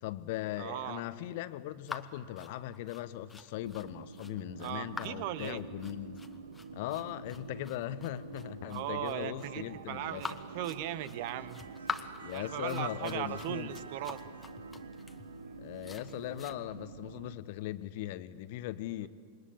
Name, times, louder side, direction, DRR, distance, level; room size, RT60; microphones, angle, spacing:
voice 1, 0.0-6.2 6.7-10.2 12.2-13.7 15.6-19.1, left 14 dB, 50° left, 1.1 m, -39 dB
voice 2, 0.6-1.0 4.6-5.6 8.7-11.6 12.3-14.2, right 12 dB, 50° right, 1.2 m, -38 dB
sound 1, 1.9-16.6, left 4 dB, 10° left, 1.4 m, -46 dB
sound 2, 3.6-17.3, right 4 dB, 70° right, 1.2 m, -47 dB
27.5 x 22.5 x 8.7 m
figure-of-eight pair, 90°, 0 cm